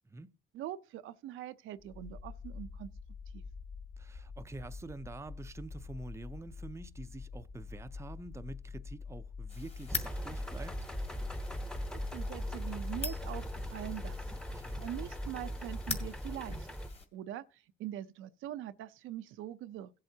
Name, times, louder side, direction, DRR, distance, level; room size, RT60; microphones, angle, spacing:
voice 1, 0.5-2.9 3.3-3.4 11.9-14.3 14.8-16.7 17.1-19.9, right 12 dB, 85° right, 0.6 m, -43 dB
sound 1, 1.8-16.6, left 5 dB, 50° left, 1.2 m, -46 dB
voice 2, 4.0-10.9 14.5-14.8, right 2 dB, 15° right, 0.5 m, -47 dB
sound 2, 9.5-17.1, left 3 dB, 30° left, 2.0 m, -44 dB
sound 3, 9.9-16.9, equal, 5° left, 0.9 m, -40 dB
17.0 x 7.8 x 2.8 m
cardioid pair, 90°, 20 cm